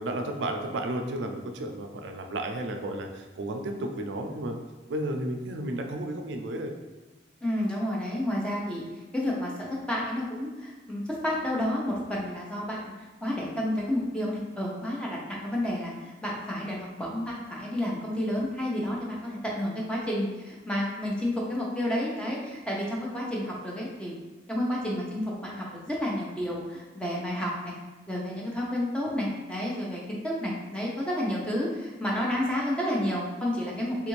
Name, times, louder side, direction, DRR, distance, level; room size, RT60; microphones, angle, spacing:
voice 1, 0.0-4.6 4.9-6.7, right 1 dB, 85° right, 4 dB, 0.4 m, -33 dB
voice 2, 7.4-24.1 24.5-27.7 28.1-34.1, left 1 dB, 5° left, -4 dB, 0.6 m, -30 dB
3.5 x 2.5 x 3.0 m, 1.2 s
head